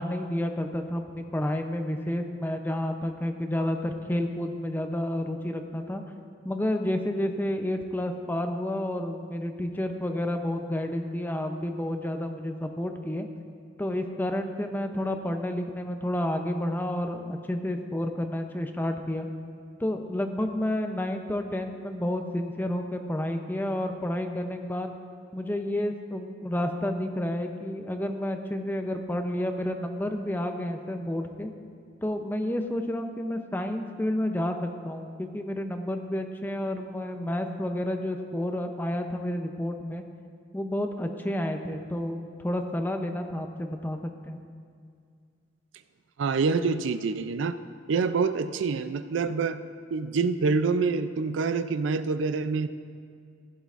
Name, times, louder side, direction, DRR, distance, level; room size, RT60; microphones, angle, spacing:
voice 1, 0.0-6.0 6.4-13.3 13.8-19.3 19.8-25.0 25.3-31.5 32.0-40.0 40.5-44.0 44.2-44.4, left 1 dB, 10° left, 5 dB, 0.6 m, -30 dB
voice 2, 46.2-47.6 47.9-49.6 49.9-52.7, right 4 dB, 85° right, 12 dB, 0.4 m, -26 dB
15.5 x 11.5 x 2.5 m, 2.2 s
head